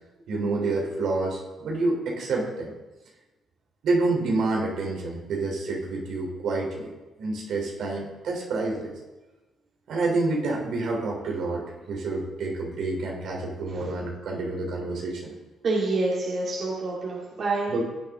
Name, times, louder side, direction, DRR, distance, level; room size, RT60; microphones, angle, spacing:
voice 1, 0.3-2.7 3.8-6.9 7.2-8.9 9.9-15.3 17.7-17.8, right 3 dB, 70° right, -1 dB, 3.5 m, -28 dB
voice 2, 15.6-17.7, right 2 dB, 55° right, -5 dB, 2.7 m, -27 dB
16.5 x 8.7 x 3.7 m, 1.1 s
cardioid pair, 90°, 0 cm